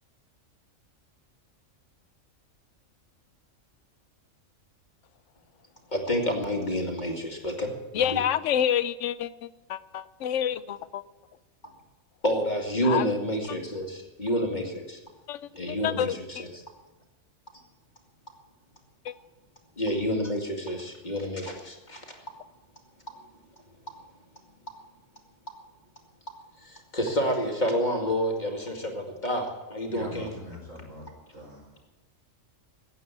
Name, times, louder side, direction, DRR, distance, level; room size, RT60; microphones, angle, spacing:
voice 1, 5.9-8.2 12.2-15.0 15.5-16.6 19.8-22.2 26.6-30.3, equal, 30° left, 2 dB, 2.4 m, -29 dB
voice 2, 7.9-9.3 9.7-11.0 12.8-13.0 15.3-15.4 15.7-16.2 19.1-19.2, left 9 dB, 70° left, 16 dB, 1.0 m, -27 dB
voice 3, 29.9-31.1 31.3-31.8, equal, 70° right, -8 dB, 5.3 m, -43 dB
16.0 x 9.2 x 8.4 m, 1.2 s
omnidirectional pair, 1.4 m